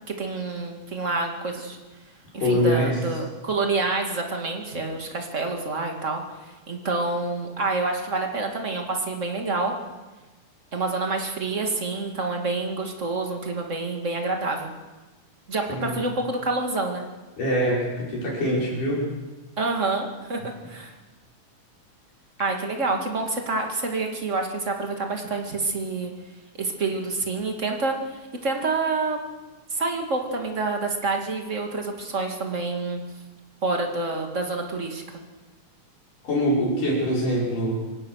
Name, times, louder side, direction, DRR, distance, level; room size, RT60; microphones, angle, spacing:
voice 1, 0.1-1.8 2.3-6.2 6.7-9.8 10.7-14.7 15.5-17.1 19.6-20.4 20.7-20.9 22.4-26.1 26.6-29.2 29.7-33.0 33.6-35.0, right 3 dB, 25° right, 2 dB, 2.2 m, -27 dB
voice 2, 2.4-3.0 15.7-16.0 17.4-19.1 36.2-37.8, equal, 75° left, -3 dB, 7.5 m, -24 dB
26.0 x 18.5 x 6.5 m, 1.2 s
omnidirectional pair, 3.8 m